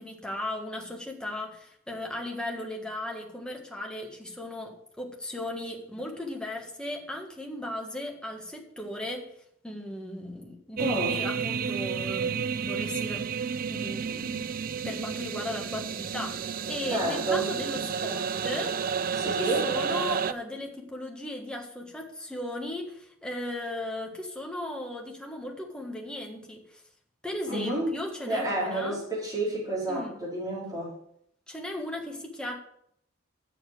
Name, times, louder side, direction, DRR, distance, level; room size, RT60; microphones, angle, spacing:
voice 1, 0.0-9.3 9.6-13.3 13.7-14.5 14.8-18.8 19.3-26.8 27.2-29.0 29.9-30.2 31.5-32.6, left 1 dB, 5° left, 0 dB, 1.6 m, -36 dB
voice 2, 10.8-11.2 16.9-17.5 19.2-19.7 27.5-27.9 28.3-30.9, right 2 dB, 20° right, -6 dB, 4.6 m, -30 dB
sound 1, 10.8-20.3, right 6 dB, 45° right, 0.4 m, -31 dB
7.1 x 7.1 x 7.7 m, 0.71 s
head